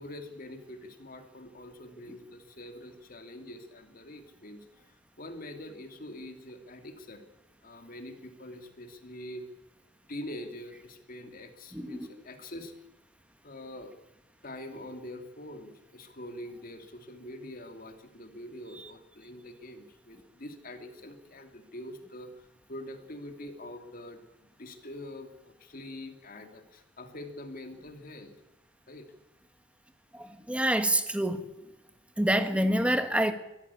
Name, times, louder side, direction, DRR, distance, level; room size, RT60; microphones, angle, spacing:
voice 1, 0.0-4.6 5.2-7.2 7.6-9.4 10.1-12.7 13.4-13.9 14.4-24.2 24.6-28.3 28.9-29.1, left 1 dB, 45° left, 6 dB, 2.7 m, -44 dB
voice 2, 11.7-12.1 18.8-18.9 30.1-31.4 32.2-33.3, right 1 dB, 5° right, 9 dB, 1.4 m, -27 dB
23.0 x 14.0 x 8.5 m, 0.92 s
head